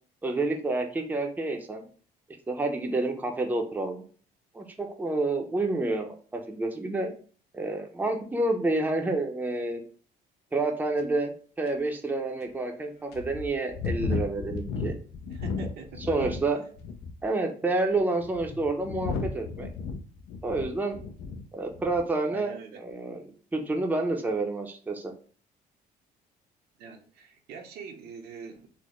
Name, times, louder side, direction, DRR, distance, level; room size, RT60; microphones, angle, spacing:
voice 1, 0.2-1.8 2.5-4.0 4.5-7.1 7.5-9.8 10.5-15.0 16.1-16.6 17.2-19.7 20.4-21.0 21.5-23.2 23.5-25.1, right 2 dB, 10° right, 2 dB, 0.6 m, -29 dB
sound 1, 11.0-11.1 11.7-11.8 12.4-12.5 13.1-16.5 16.8-17.3 18.0-21.4 21.7-22.1, left 4 dB, 75° left, 0.5 m, -34 dB
voice 2, 15.3-16.4 22.3-22.8 26.8-28.7, right 5 dB, 70° right, 4 dB, 0.7 m, -43 dB
4.1 x 2.1 x 3.0 m, 0.42 s
cardioid pair, 110°, 17 cm